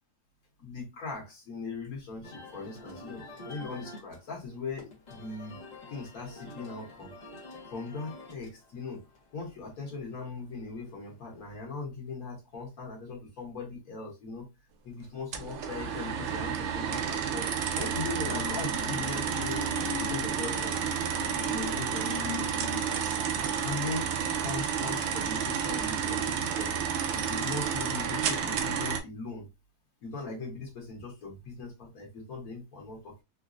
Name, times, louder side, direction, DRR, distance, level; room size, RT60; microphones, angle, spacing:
voice 1, 0.6-5.6 5.9-7.1 7.7-9.0 9.3-14.5 14.8-19.6 20.0-20.8 21.5-22.2 23.6-26.8 27.1-29.5 30.0-33.2, left 4 dB, 60° left, -1 dB, 1.4 m, -39 dB
sound 1, 2.2-11.6, left 2 dB, 40° left, 0.6 m, -49 dB
sound 2, 15.3-29.0, right 7 dB, 80° right, 0.6 m, -31 dB
sound 3, 17.6-26.2 26.6-26.8, left 10 dB, 90° left, 1.3 m, -43 dB
3.8 x 2.1 x 2.4 m, 0.24 s
omnidirectional pair, 1.8 m